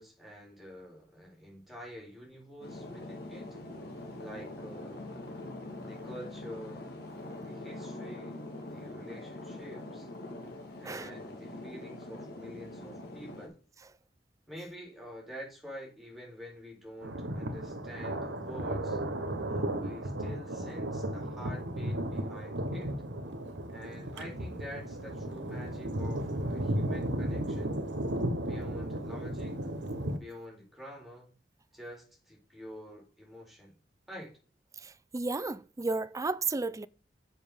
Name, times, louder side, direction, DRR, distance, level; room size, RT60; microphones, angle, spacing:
voice 1, 0.0-3.5 4.2-5.0 5.8-6.8 7.2-8.4 8.7-10.1 10.8-13.6 14.5-19.0 19.5-22.9 23.7-27.7 28.4-29.6 30.2-31.3 31.7-33.7 34.1-34.3, equal, ahead, 4.3 m, -47 dB
sound 1, 2.6-13.5, left 2 dB, 60° left, 2.7 m, -43 dB
voice 2, 10.8-11.2 34.8-36.9, right 3 dB, 20° right, 0.4 m, -33 dB
Thunder, 17.0-30.2, right 1 dB, 80° right, 1.2 m, -34 dB
7.4 x 6.3 x 5.1 m
head